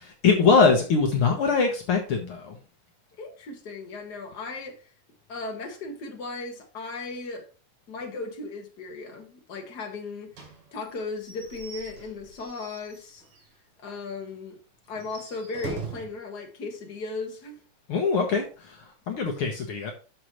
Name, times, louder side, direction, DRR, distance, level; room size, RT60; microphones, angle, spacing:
voice 1, 0.2-2.6 17.9-19.9, left 4 dB, 85° left, 1.2 m, -22 dB
voice 2, 3.2-4.8 5.3-7.5 7.9-10.4 10.7-13.2 13.8-14.6 14.9-17.6, left 3 dB, 45° left, 1.3 m, -36 dB
Slam / Squeak / Wood, 10.3-13.5 13.9-14.0 14.3-14.4 14.9-16.2, right 5 dB, 60° right, 4.0 m, -42 dB
9.5 x 6.4 x 3.1 m
omnidirectional pair, 4.2 m